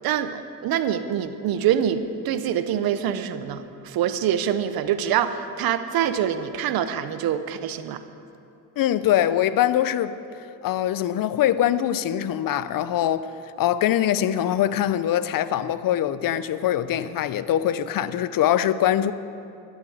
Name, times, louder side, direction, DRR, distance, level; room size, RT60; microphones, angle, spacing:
voice 1, 0.0-8.0, right 9 dB, 85° right, 0.8 m, -25 dB
voice 2, 8.8-10.2 10.6-13.3 13.6-19.1, left 11 dB, 70° left, 0.6 m, -23 dB
12.0 x 8.1 x 7.8 m
cardioid pair, 70°, 35 cm